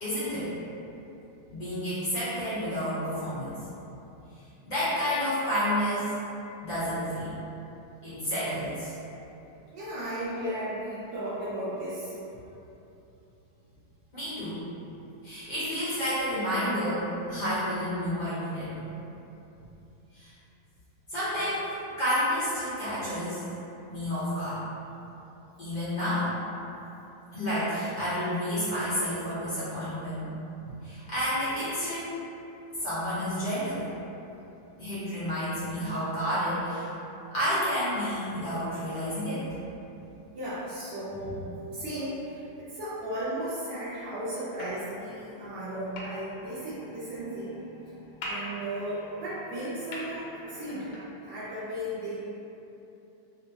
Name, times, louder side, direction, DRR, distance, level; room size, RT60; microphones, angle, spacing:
voice 1, 0.0-0.5 1.5-3.6 4.6-6.1 6.6-7.3 8.0-8.9 14.1-14.7 15.2-18.7 20.1-20.3 21.1-23.4 23.9-24.6 25.6-26.3 27.3-30.3 30.8-32.1 32.8-33.9 34.8-36.9 37.3-39.5 41.1-41.3, equal, 45° left, -13 dB, 0.6 m, -30 dB
voice 2, 9.7-12.2 18.7-18.9 19.6-19.7 40.3-41.5 41.7-47.6 48.2-50.9 51.2-52.2, right 1 dB, 70° right, -12 dB, 1.2 m, -35 dB
sound 1, 44.6-51.0, left 1 dB, 75° left, 1.3 m, -43 dB
3.5 x 2.6 x 2.8 m, 2.9 s
omnidirectional pair, 2.4 m